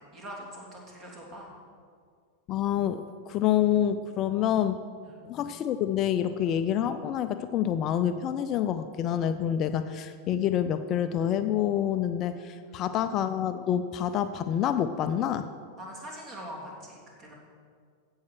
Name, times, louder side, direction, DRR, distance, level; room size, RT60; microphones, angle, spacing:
voice 1, 0.0-1.5 4.3-4.4 5.0-5.2 12.6-12.9 15.8-17.3, equal, 35° right, -2 dB, 3.2 m, -43 dB
voice 2, 2.5-4.8 5.3-15.5, left 10 dB, 35° left, 10 dB, 0.4 m, -27 dB
15.5 x 5.6 x 6.3 m, 2.1 s
figure-of-eight pair, 90°, 0 cm